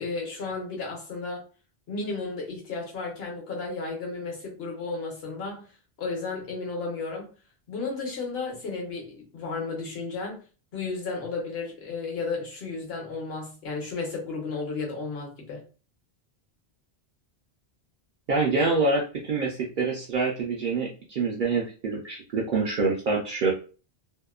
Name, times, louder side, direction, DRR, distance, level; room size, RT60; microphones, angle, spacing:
voice 1, 0.0-1.4 1.9-5.7 6.0-7.3 7.7-10.5 10.7-15.6, left 4 dB, 70° left, 1.1 m, -33 dB
voice 2, 18.3-23.5, right 3 dB, 60° right, 0.6 m, -26 dB
2.8 x 2.1 x 2.3 m
omnidirectional pair, 1.1 m